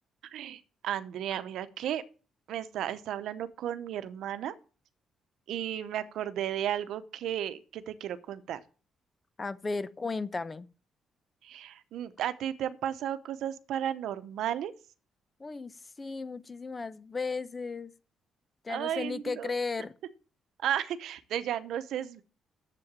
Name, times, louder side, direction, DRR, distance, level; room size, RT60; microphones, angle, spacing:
voice 1, 0.3-2.0 2.5-4.5 5.5-8.6 11.4-14.7 18.7-19.5 20.6-22.2, right 10 dB, 85° right, 0.8 m, -34 dB
voice 2, 9.4-10.7 15.4-17.9 18.6-19.9, left 4 dB, 25° left, 0.7 m, -35 dB
7.8 x 7.7 x 7.3 m
cardioid pair, 110°, 0 cm